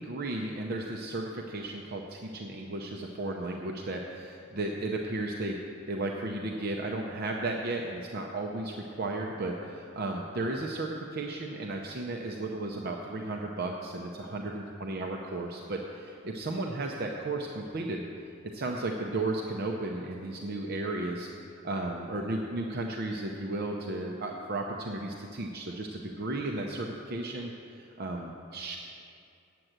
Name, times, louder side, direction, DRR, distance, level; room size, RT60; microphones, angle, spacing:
voice 1, 0.0-5.6 5.9-18.1 18.5-21.3 21.6-27.5 27.8-28.8, right 2 dB, 50° right, 1 dB, 0.6 m, -34 dB
8.8 x 7.7 x 7.9 m, 2.6 s
head